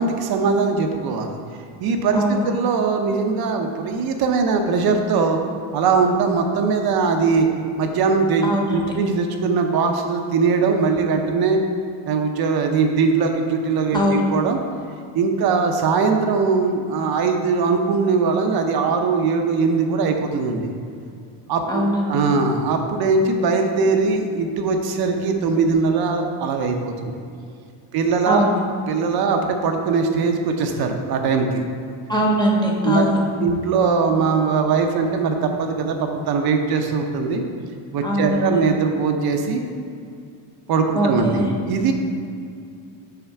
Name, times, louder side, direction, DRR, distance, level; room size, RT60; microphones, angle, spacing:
voice 1, 0.0-1.4 1.8-5.4 5.7-7.5 7.8-11.6 12.1-14.6 15.1-20.7 21.5-26.9 27.9-28.5 28.9-31.6 32.8-33.1 33.4-37.4 37.9-39.6 40.7-41.9, right 4 dB, 55° right, 4 dB, 0.7 m, -21 dB
voice 2, 2.1-2.5 8.4-8.8 13.9-14.2 21.7-22.2 28.3-28.6 32.1-33.2 38.0-38.6 40.9-41.5, equal, 10° left, -3 dB, 0.6 m, -21 dB
5.8 x 4.4 x 5.5 m, 2.4 s
cardioid pair, 150°, 46 cm